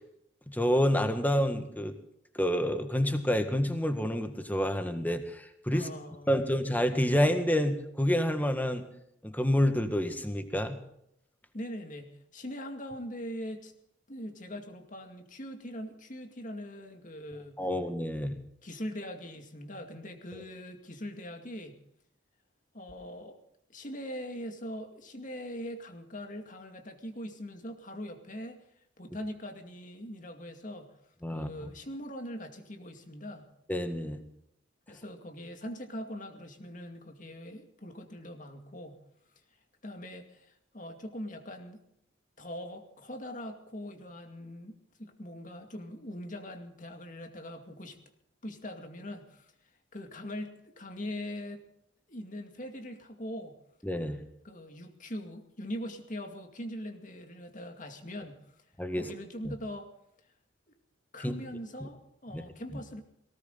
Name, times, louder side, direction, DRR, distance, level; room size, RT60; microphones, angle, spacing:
voice 1, 0.5-1.9 2.3-5.9 6.3-8.8 9.2-10.8 17.6-18.4 20.3-20.4 31.2-31.5 33.7-34.2 53.8-54.2 58.8-59.1 59.4-59.5 61.2-61.3 62.3-62.4, equal, 10° left, 7 dB, 1.6 m, -28 dB
voice 2, 5.7-6.6 11.5-13.7 14.1-17.6 18.6-21.8 22.7-23.4 23.7-28.6 29.0-30.9 31.3-33.5 34.9-39.0 39.8-41.8 42.4-48.0 48.4-49.5 49.9-51.6 52.1-53.6 54.4-58.6 58.9-59.9 61.1-63.0, equal, 45° left, 5 dB, 2.3 m, -42 dB
18.5 x 18.0 x 3.9 m, 0.75 s
head